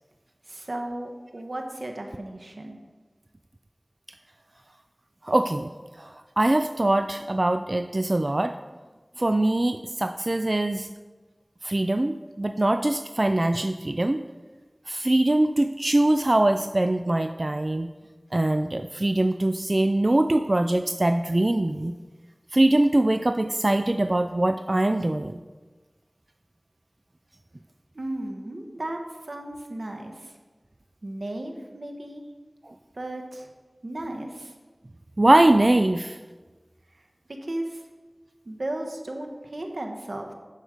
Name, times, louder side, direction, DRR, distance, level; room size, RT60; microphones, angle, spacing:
voice 1, 0.5-2.8 27.9-30.3 31.0-32.2 32.9-33.5 33.8-34.5 37.0-37.8 38.4-40.3, right 1 dB, 85° right, 3 dB, 1.2 m, -35 dB
voice 2, 5.2-5.7 6.0-8.6 9.2-10.9 11.6-14.2 14.9-17.9 18.3-21.9 22.5-25.4 35.2-36.2, right 1 dB, 50° right, 8 dB, 0.3 m, -22 dB
10.5 x 6.3 x 5.1 m, 1.3 s
wide cardioid pair, 45°, 0 cm